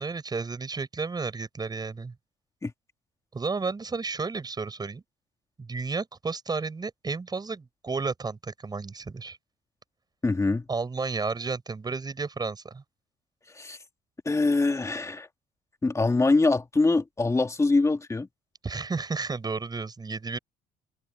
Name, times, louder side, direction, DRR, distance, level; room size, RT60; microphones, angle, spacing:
voice 1, 0.0-2.1 3.3-5.0 5.6-9.4 10.7-12.8 18.6-20.4, right 4 dB, 25° right, 6.9 m, -32 dB
voice 2, 10.2-10.6 13.5-13.8 14.3-15.3 15.8-18.3, left 3 dB, 15° left, 2.2 m, -24 dB
cardioid pair, 110°, 17 cm